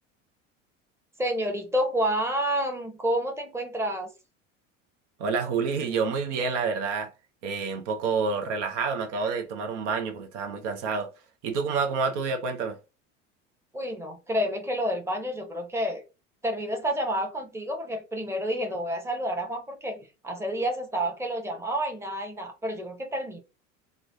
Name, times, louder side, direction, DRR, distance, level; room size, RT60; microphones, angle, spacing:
voice 1, 1.2-4.1 13.7-16.0 16.4-23.4, equal, 5° right, 0.8 m, -29 dB
voice 2, 5.2-7.1 7.4-11.1 11.4-12.8, right 5 dB, 65° right, 0.8 m, -28 dB
3.1 x 2.1 x 2.6 m
hypercardioid pair, 75°, 38 cm